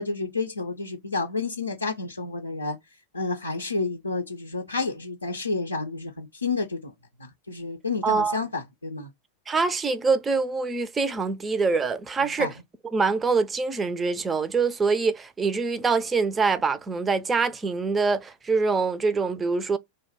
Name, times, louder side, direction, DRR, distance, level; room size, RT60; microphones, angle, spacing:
voice 1, 0.0-2.8 3.1-6.9 7.2-9.1 12.4-12.5, left 3 dB, 80° left, 0.4 m, -30 dB
voice 2, 8.0-8.4 9.5-12.5 12.9-19.8, right 4 dB, 15° right, 0.4 m, -24 dB
2.1 x 2.1 x 3.4 m
figure-of-eight pair, 90°, 0 cm